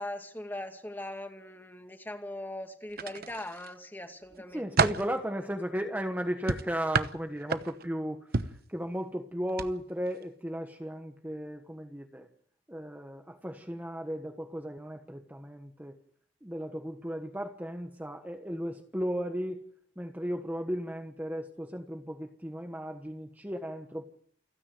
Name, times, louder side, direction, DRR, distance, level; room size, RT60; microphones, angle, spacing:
voice 1, 0.0-4.7, left 1 dB, 10° left, 5 dB, 2.3 m, -40 dB
throwing logs on dirt, 2.9-3.7 4.2-5.1 6.5-7.9 8.3-8.6 9.5-9.7 10.1-10.2, right 4 dB, 55° right, 1.0 m, -30 dB
voice 2, 4.5-12.3 12.7-16.0 16.4-19.6 20.0-24.0, equal, 10° right, 4 dB, 1.3 m, -35 dB
29.0 x 9.9 x 9.3 m, 0.63 s
head